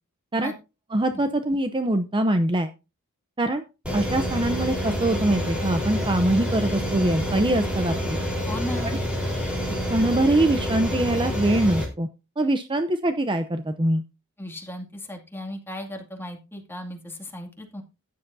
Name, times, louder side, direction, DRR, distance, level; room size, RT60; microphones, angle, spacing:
voice 1, 0.9-2.7 3.4-3.6 3.9-8.2 9.9-12.1 12.4-14.0, right 1 dB, 20° right, 8 dB, 0.7 m, -23 dB
sound 1, 3.8-11.9, equal, 5° right, 4.1 m, -27 dB
voice 2, 8.5-9.0 14.4-17.8, left 1 dB, 10° left, 2 dB, 2.3 m, -36 dB
14.5 x 10.5 x 2.7 m, 0.29 s
head